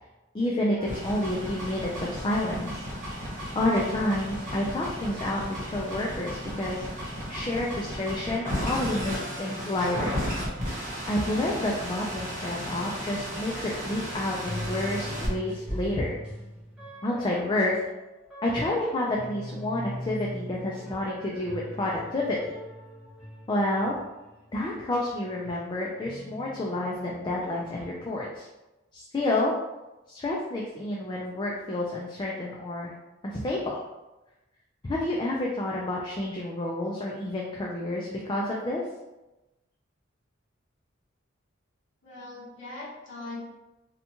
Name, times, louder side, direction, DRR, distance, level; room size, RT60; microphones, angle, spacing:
voice 1, 0.3-2.9 3.5-10.2 11.1-16.2 17.0-17.8 18.4-22.6 23.5-24.0 24.5-28.5 28.9-29.5 30.1-32.9 33.2-33.8 34.8-38.8, left 1 dB, 25° left, -3 dB, 0.3 m, -29 dB
sound 1, 0.8-15.3, equal, 40° right, 0.9 m, -34 dB
sound 2, 14.4-24.9 25.3-27.2 27.6-27.9, equal, 5° right, 0.8 m, -40 dB
voice 2, 42.0-43.5, left 2 dB, 65° left, -7 dB, 0.8 m, -40 dB
2.8 x 2.2 x 2.8 m, 1.0 s
head